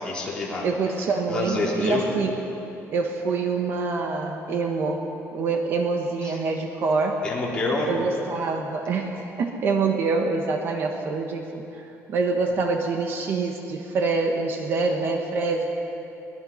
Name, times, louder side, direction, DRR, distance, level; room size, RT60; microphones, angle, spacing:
voice 1, 0.0-0.7 1.3-2.1 6.2-6.4 7.2-7.9, left 3 dB, 15° left, -5 dB, 4.1 m, -27 dB
voice 2, 0.6-2.4 2.9-7.2 7.9-11.8 12.1-15.7, right 4 dB, 40° right, 3 dB, 1.3 m, -26 dB
23.0 x 20.5 x 5.7 m, 3.0 s
cardioid pair, 180°, 6 cm